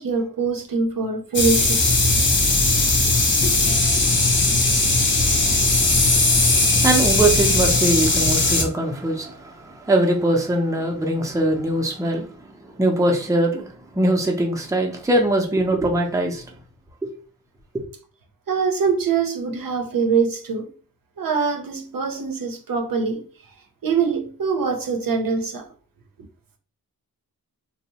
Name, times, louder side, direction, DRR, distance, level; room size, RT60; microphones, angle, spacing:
voice 1, 0.0-1.8 18.5-20.7 21.2-23.2 23.8-25.7, right 5 dB, 65° right, 0.6 m, -23 dB
sound 1, 1.3-8.6, left 2 dB, 30° left, 0.6 m, -18 dB
voice 2, 3.7-4.7 5.2-12.3 12.8-13.7 13.9-16.4 17.0-17.1 17.7-17.8, right 1 dB, 10° right, 0.5 m, -22 dB
2.7 x 2.0 x 2.8 m
wide cardioid pair, 85°, 37 cm